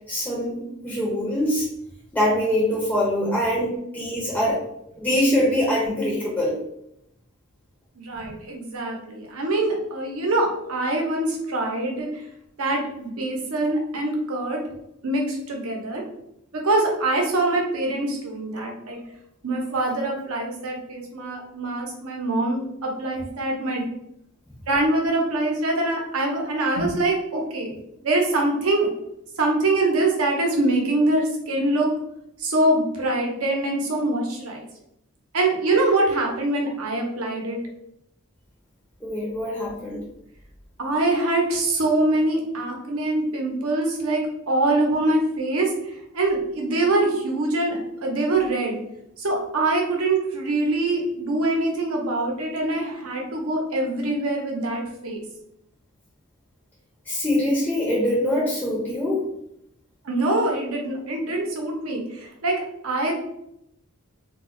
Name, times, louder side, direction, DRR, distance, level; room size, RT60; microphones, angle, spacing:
voice 1, 0.1-1.7 2.1-4.6 5.0-6.5 39.0-40.0 57.1-59.2, left 1 dB, 5° left, -5 dB, 0.5 m, -23 dB
voice 2, 8.0-12.2 12.6-14.6 15.0-16.0 16.5-19.0 19.4-23.8 24.7-27.7 28.0-28.9 29.4-31.9 32.4-34.6 35.3-37.6 40.8-44.2 44.5-48.8 49.2-55.2 60.0-63.2, right 2 dB, 75° right, 1 dB, 0.7 m, -24 dB
2.3 x 2.1 x 3.7 m, 0.78 s
head